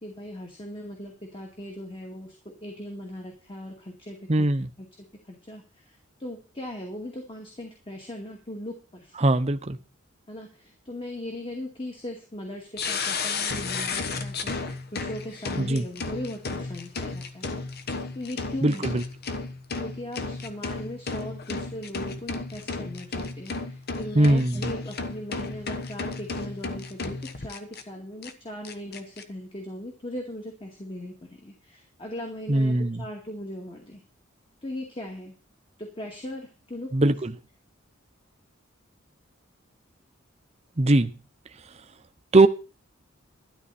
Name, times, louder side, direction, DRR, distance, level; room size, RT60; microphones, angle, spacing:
voice 1, 0.0-4.5 4.8-4.9 5.2-9.1 10.3-17.7 18.1-18.9 19.8-34.0 34.6-35.4 35.8-37.1, left 1 dB, 25° left, 2 dB, 2.2 m, -39 dB
voice 2, 4.3-4.7 9.2-9.8 15.6-15.8 18.6-19.0 24.1-24.7 32.5-33.0 36.9-37.3 40.8-41.1 42.3-42.5, right 2 dB, 30° right, 9 dB, 0.8 m, -21 dB
sound 1, 12.8-27.8 28.2-28.3 28.6-29.2, left 4 dB, 50° left, 1.2 m, -33 dB
12.5 x 11.5 x 4.3 m, 0.33 s
head